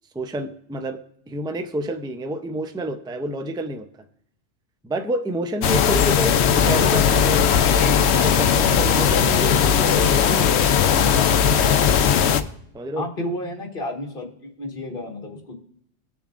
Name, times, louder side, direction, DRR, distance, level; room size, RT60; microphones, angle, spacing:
voice 1, 0.1-3.9 4.8-10.8 12.7-13.0, right 1 dB, 5° right, 7 dB, 0.4 m, -29 dB
sound 1, 5.6-12.4, left 8 dB, 65° left, 0.9 m, -18 dB
voice 2, 13.0-14.3 14.6-15.5, left 1 dB, 45° left, 1 dB, 1.9 m, -31 dB
19.5 x 7.1 x 2.5 m, 0.71 s
omnidirectional pair, 1.2 m